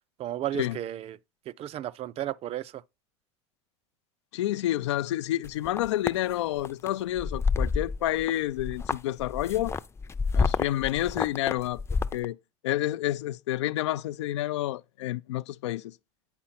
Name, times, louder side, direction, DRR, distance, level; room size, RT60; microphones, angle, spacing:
voice 1, 0.2-1.2 1.5-2.8, right 12 dB, 45° right, 0.5 m, -34 dB
voice 2, 4.3-9.7 10.3-11.8 12.1-12.4 12.6-15.9, left 14 dB, 85° left, 0.4 m, -29 dB
sound 1, 5.4-6.2 6.6-6.9 7.2-8.3 8.6-12.2, left 4 dB, 20° left, 0.5 m, -28 dB
8.9 x 4.2 x 5.7 m
hypercardioid pair, 90°, 14 cm